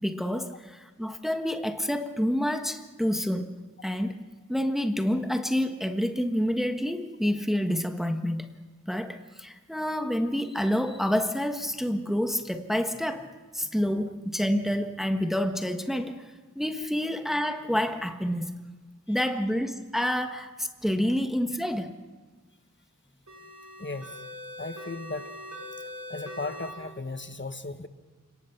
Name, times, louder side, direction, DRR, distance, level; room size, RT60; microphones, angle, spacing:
voice 1, 0.0-3.5 3.8-4.2 4.5-8.5 8.9-18.5 19.1-21.9, equal, ahead, 6 dB, 1.4 m, -28 dB
sound 1, 23.3-26.7, left 1 dB, 65° right, 7.0 m, -42 dB
voice 2, 23.8-24.2 24.6-25.3 25.7-25.8 26.1-27.9, left 3 dB, 35° left, 9 dB, 1.3 m, -36 dB
29.0 x 18.5 x 6.0 m, 1.3 s
wide cardioid pair, 45°, 31 cm